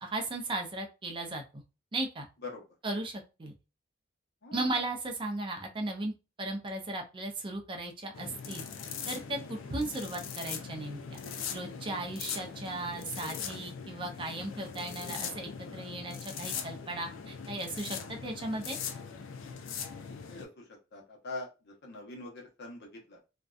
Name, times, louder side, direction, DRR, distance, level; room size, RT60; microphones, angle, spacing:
voice 1, 0.0-1.6 1.9-2.3 2.8-3.5 4.5-6.1 6.4-8.6 9.1-11.2 11.5-18.8, right 2 dB, 25° right, 3 dB, 0.4 m, -36 dB
sound 1, 8.1-20.4, left 6 dB, 90° left, 0.4 m, -41 dB
voice 2, 20.0-20.5 20.9-21.5 21.8-23.2, left 2 dB, 60° left, 0 dB, 0.8 m, -44 dB
2.5 x 2.2 x 2.3 m, 0.29 s
head